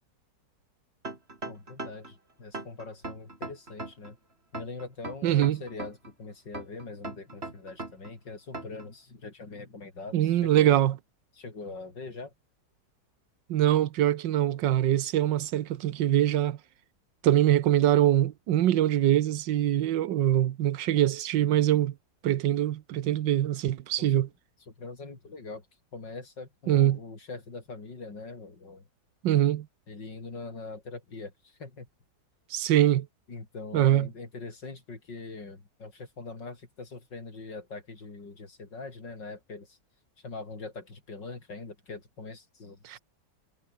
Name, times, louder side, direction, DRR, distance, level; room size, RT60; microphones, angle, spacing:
sound 1, 1.0-2.1 2.5-4.1 4.5-6.1 6.5-8.1 8.5-8.9, right 2 dB, 35° right, 4.0 m, -39 dB
voice 1, 1.4-4.2 4.5-10.8 11.4-12.3 24.0-24.1 24.7-25.7 25.9-28.8 29.9-31.9 33.3-39.8 40.2-43.0, left 3 dB, 80° left, 5.3 m, -42 dB
voice 2, 5.2-5.6 10.1-11.0 13.5-16.6 17.2-21.9 22.2-24.3 26.7-27.0 29.2-29.7 32.5-33.1 33.7-34.1 42.8-43.0, right 12 dB, 90° right, 1.6 m, -23 dB
omnidirectional pair, 1.9 m